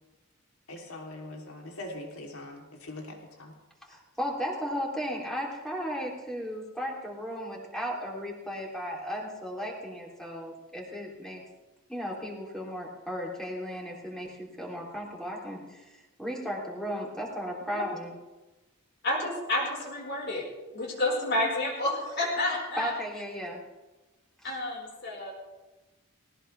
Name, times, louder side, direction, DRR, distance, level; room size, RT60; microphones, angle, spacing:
voice 1, 0.7-3.5, left 1 dB, 80° left, 0 dB, 3.3 m, -42 dB
voice 2, 3.9-11.4 11.9-15.6 16.2-18.1 22.8-23.6, equal, ahead, -2 dB, 3.3 m, -35 dB
voice 3, 19.0-20.4 20.7-22.9 24.4-25.3, left 1 dB, 50° left, -2 dB, 4.9 m, -30 dB
19.5 x 18.5 x 3.4 m, 1.1 s
head